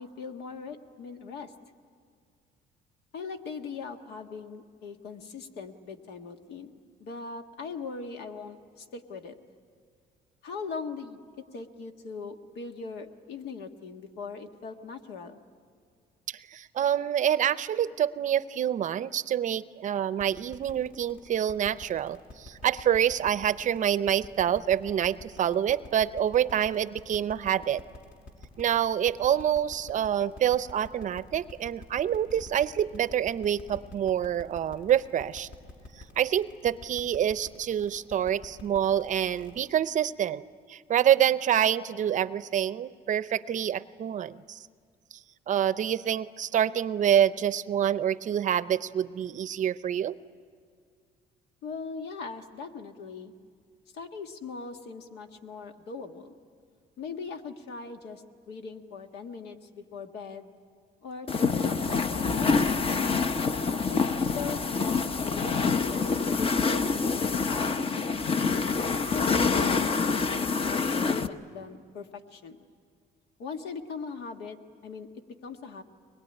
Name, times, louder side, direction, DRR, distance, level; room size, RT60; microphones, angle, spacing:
voice 1, 0.0-1.5 3.1-6.7 7.0-9.4 10.4-15.4 51.6-53.3 53.9-56.3 57.0-60.5 61.0-62.9 63.9-64.0 64.3-68.2 69.1-72.6 73.4-74.6 74.8-75.8, left 5 dB, 80° left, 5 dB, 1.6 m, -40 dB
voice 2, 16.3-27.8 28.6-35.5 36.2-40.4 40.7-44.6 45.5-50.2, right 10 dB, 45° right, 15 dB, 0.6 m, -27 dB
sound 1, 20.2-39.7, left 2 dB, 60° left, 5.2 m, -47 dB
sound 2, 61.3-71.3, left 4 dB, 35° left, 0.8 m, -26 dB
23.5 x 21.0 x 9.9 m, 2.1 s
cardioid pair, 110°, 17 cm